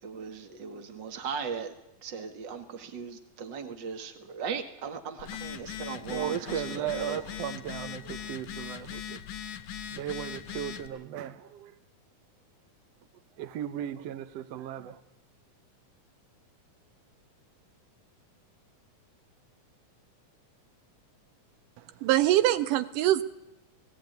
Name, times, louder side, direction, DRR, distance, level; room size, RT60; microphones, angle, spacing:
voice 1, 0.0-1.7 2.0-7.2, right 6 dB, 40° right, 2.1 m, -38 dB
Telephone, 5.2-10.9, left 9 dB, 70° left, 2.3 m, -40 dB
voice 2, 6.0-9.2 9.9-11.7 13.4-15.0, right 10 dB, 65° right, 1.8 m, -36 dB
voice 3, 22.0-23.2, right 14 dB, 90° right, 2.6 m, -23 dB
18.0 x 17.5 x 9.3 m
omnidirectional pair, 3.6 m